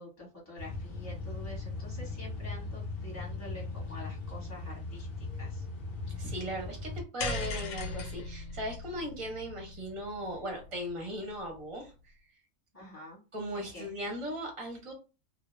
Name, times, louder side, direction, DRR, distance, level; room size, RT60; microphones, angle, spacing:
voice 1, 0.0-5.6 12.7-13.2 13.5-13.9, left 1 dB, 15° left, -3 dB, 1.0 m, -47 dB
sound 1, 0.6-7.0, left 3 dB, 50° left, 0.7 m, -39 dB
voice 2, 6.2-12.1 13.3-14.9, equal, 30° right, 1 dB, 0.6 m, -38 dB
sound 2, 7.2-11.6, left 3 dB, 70° left, 0.9 m, -39 dB
2.3 x 2.1 x 3.1 m, 0.31 s
omnidirectional pair, 1.4 m